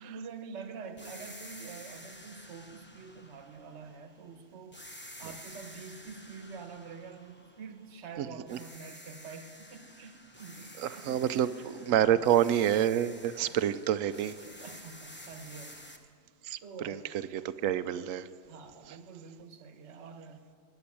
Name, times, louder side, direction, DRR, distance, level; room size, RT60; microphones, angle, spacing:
voice 1, 0.0-11.5 11.9-12.3 13.3-13.5 14.4-15.9 16.6-17.1 18.5-20.5, right 5 dB, 50° right, 7 dB, 1.3 m, -46 dB
sound 1, 1.0-4.3 4.7-8.1 8.5-16.0, left 1 dB, 10° left, 0.9 m, -50 dB
voice 2, 11.0-11.5 11.9-14.4 16.4-16.6 16.8-17.0 17.3-18.3, right 10 dB, 70° right, 14 dB, 0.9 m, -27 dB
20.0 x 7.7 x 8.6 m, 2.3 s
omnidirectional pair, 1.6 m